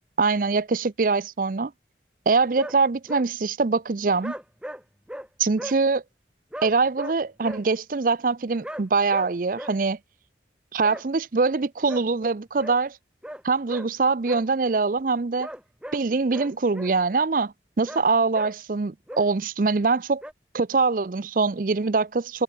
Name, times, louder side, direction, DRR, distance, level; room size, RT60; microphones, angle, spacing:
voice 1, 0.2-1.7 2.3-4.3 5.4-6.0 6.6-10.0 10.7-13.0 13.4-15.5 15.9-20.2 20.5-22.4, right 4 dB, 50° right, 0.5 m, -23 dB
sound 1, 2.6-2.8 3.1-3.3 4.2-4.8 5.1-5.3 5.6-5.8 6.5-7.6 8.6-8.8 9.1-9.3 9.6-9.7 10.8-11.0 11.9-12.0 12.6-12.8 13.2-13.4 13.7-13.9 14.2-14.4 15.4-16.0 16.3-16.9 17.9-18.1 18.3-18.5 19.1-19.3 20.2-20.3, equal, 5° right, 3.5 m, -37 dB
head